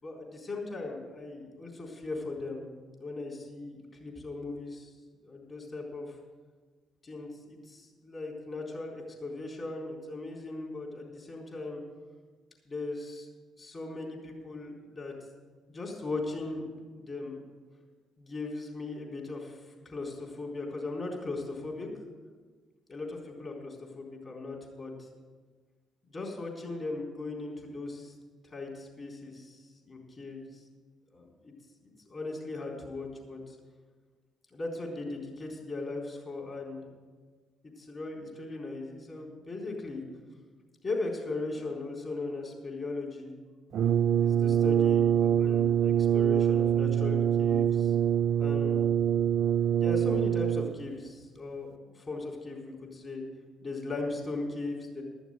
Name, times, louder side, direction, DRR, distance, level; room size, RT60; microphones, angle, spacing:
voice 1, 0.0-2.7 3.0-4.9 5.2-6.1 7.0-11.8 12.7-13.3 13.6-15.1 15.7-17.4 18.2-19.6 19.8-21.9 22.9-25.1 26.1-28.1 28.4-30.6 31.1-31.5 31.8-33.6 34.5-36.8 37.8-40.0 40.8-43.3 44.2-47.9 48.4-48.9 49.8-53.2 53.6-55.0, left 3 dB, 45° left, -1 dB, 4.0 m, -38 dB
Brass instrument, 43.7-50.9, right 9 dB, 65° right, 0.3 m, -25 dB
13.0 x 7.1 x 7.8 m, 1.5 s
hypercardioid pair, 55°, 0 cm